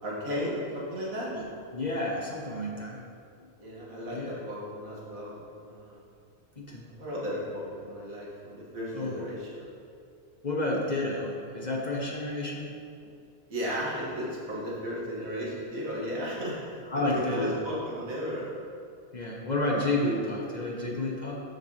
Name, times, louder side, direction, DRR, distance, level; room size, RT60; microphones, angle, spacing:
voice 1, 0.0-1.3 3.6-6.0 6.9-9.8 13.5-18.5, equal, 90° right, -6 dB, 2.6 m, -35 dB
voice 2, 1.7-3.0 4.1-4.3 6.6-6.8 8.9-9.2 10.4-12.7 16.9-17.6 19.1-21.4, left 2 dB, 35° left, -2 dB, 1.2 m, -30 dB
13.5 x 6.5 x 3.3 m, 2.4 s
omnidirectional pair, 1.4 m